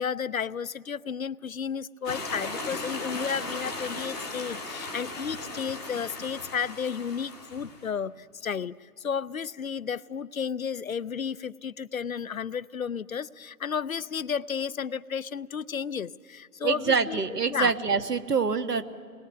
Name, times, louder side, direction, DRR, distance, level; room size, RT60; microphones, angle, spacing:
voice 1, 0.0-17.2 17.5-17.7, left 7 dB, 60° left, 17 dB, 0.6 m, -32 dB
sound 1, 2.0-7.9, left 2 dB, 5° right, 0.8 m, -37 dB
voice 2, 16.6-18.8, right 5 dB, 75° right, 10 dB, 1.6 m, -25 dB
28.5 x 20.5 x 9.4 m, 2.2 s
figure-of-eight pair, 150°, 47 cm